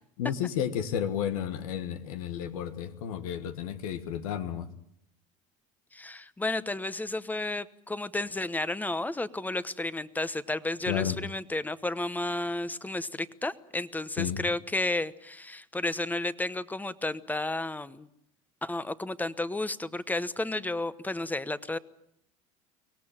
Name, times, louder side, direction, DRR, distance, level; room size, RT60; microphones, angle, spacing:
voice 1, 0.2-4.7 10.9-11.2 14.2-14.4, left 9 dB, 90° left, 9 dB, 1.6 m, -32 dB
voice 2, 5.9-18.1 18.6-21.8, left 2 dB, 10° left, 16 dB, 1.0 m, -32 dB
23.5 x 18.0 x 8.8 m, 0.76 s
supercardioid pair, 100°, 18 cm